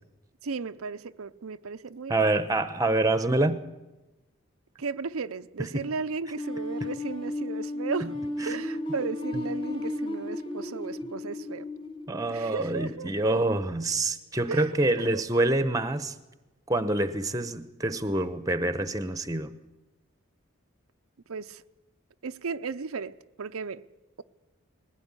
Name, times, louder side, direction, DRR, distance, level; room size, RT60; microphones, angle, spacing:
voice 1, 0.4-2.3 4.8-8.2 8.5-11.7 12.3-13.1 14.5-15.2 21.3-21.6 22.2-23.9, right 5 dB, 85° right, 0.6 m, -35 dB
voice 2, 2.1-3.6 5.7-5.9 8.0-8.1 8.4-8.6 12.1-16.1 16.7-19.5, right 2 dB, 15° right, 1.0 m, -26 dB
sound 1, 6.4-13.2, left 1 dB, 25° left, 1.6 m, -34 dB
21.0 x 16.0 x 9.8 m
head